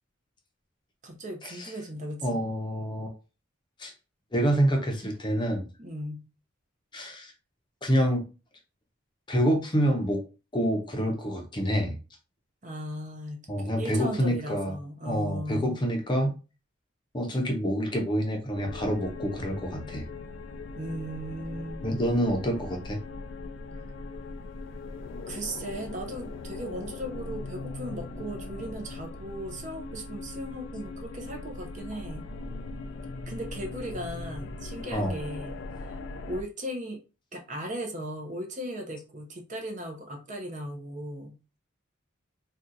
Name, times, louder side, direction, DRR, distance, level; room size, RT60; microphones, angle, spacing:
voice 1, 1.0-2.4 5.8-6.2 12.6-15.8 20.7-21.9 25.3-32.3 33.3-35.6 35.9-36.0 36.3-37.0 37.3-41.6, equal, 35° right, 3 dB, 0.6 m, -37 dB
voice 2, 2.2-3.1 3.8-3.9 4.3-5.7 6.9-7.3 7.8-8.3 9.3-10.2 10.5-12.0 13.5-14.8 15.0-16.3 17.1-20.0 21.8-23.0 34.9-35.2, equal, 25° left, 2 dB, 0.6 m, -27 dB
sound 1, 18.6-36.4, left 3 dB, 65° left, 0.3 m, -40 dB
2.6 x 2.3 x 3.8 m, 0.31 s
head